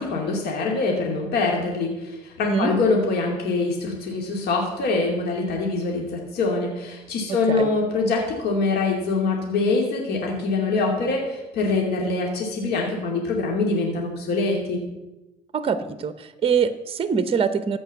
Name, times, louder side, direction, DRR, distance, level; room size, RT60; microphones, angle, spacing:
voice 1, 0.0-14.8, left 3 dB, 70° left, 0 dB, 2.6 m, -24 dB
voice 2, 2.4-2.7 7.3-7.7 15.5-17.8, right 6 dB, 35° right, 11 dB, 0.9 m, -24 dB
14.5 x 5.3 x 8.1 m, 1.0 s
cardioid pair, 110°, 17 cm